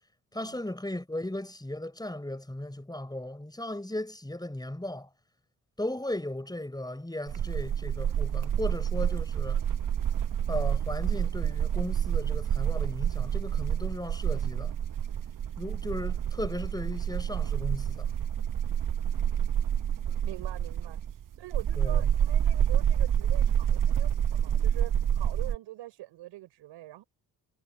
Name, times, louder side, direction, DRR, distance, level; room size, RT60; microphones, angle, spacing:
voice 1, 0.3-5.1 5.8-9.6 10.5-14.7 15.6-18.1 21.8-22.1, left 1 dB, 10° left, 6.6 m, -36 dB
sound 1, 7.3-25.6, right 9 dB, 45° right, 1.0 m, -28 dB
voice 2, 19.1-19.8 20.0-27.0, right 16 dB, 75° right, 4.8 m, -45 dB
hypercardioid pair, 45°, 44 cm